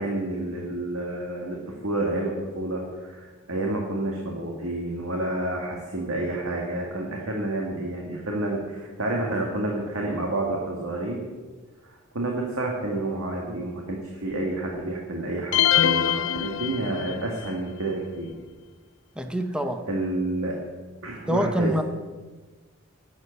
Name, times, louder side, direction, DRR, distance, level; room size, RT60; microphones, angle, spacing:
voice 1, 0.0-1.6 1.8-11.2 11.8-18.3 19.9-20.6 21.0-21.8, right 2 dB, 85° right, -1 dB, 1.9 m, -29 dB
sound 1, 15.5-17.3, left 10 dB, 60° left, 0.5 m, -23 dB
voice 2, 19.2-19.8 21.3-21.8, equal, 5° right, 7 dB, 0.7 m, -25 dB
11.0 x 7.9 x 8.2 m, 1.3 s
head